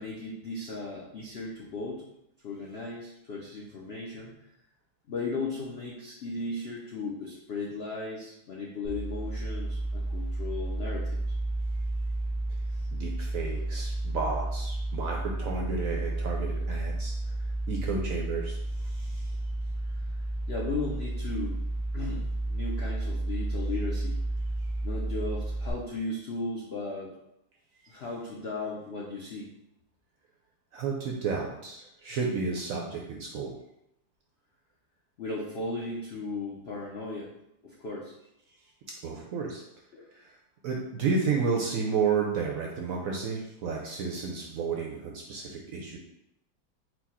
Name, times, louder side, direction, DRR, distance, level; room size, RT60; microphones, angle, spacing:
voice 1, 0.0-2.0 2.4-4.3 5.1-11.2 12.7-12.9 20.5-21.6 21.9-24.2 24.8-27.1 27.8-29.5 35.2-37.3 37.6-38.1 39.9-40.0, left 3 dB, 75° left, -3 dB, 0.5 m, -36 dB
sound 1, 8.8-25.7, right 2 dB, 40° left, 0.8 m, -32 dB
voice 2, 12.9-17.1 17.7-19.4 30.7-33.5 39.0-39.6 40.1-40.4 40.6-46.0, right 5 dB, 70° right, 0 dB, 0.8 m, -32 dB
4.4 x 2.2 x 4.1 m, 0.82 s
omnidirectional pair, 1.9 m